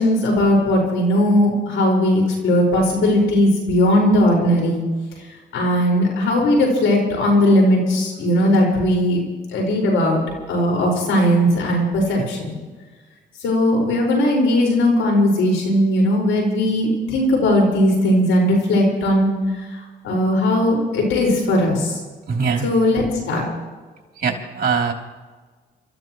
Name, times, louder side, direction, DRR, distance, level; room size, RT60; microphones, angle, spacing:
voice 1, 0.0-4.8 5.5-9.2 9.5-10.2 10.5-12.5 13.4-19.4 20.0-22.0 22.6-23.4, left 1 dB, 80° left, -1 dB, 5.3 m, -18 dB
voice 2, 22.3-22.6 24.2-24.9, right 5 dB, 50° right, 2 dB, 3.3 m, -22 dB
28.5 x 14.0 x 3.1 m, 1.4 s
cardioid pair, 90°, 20 cm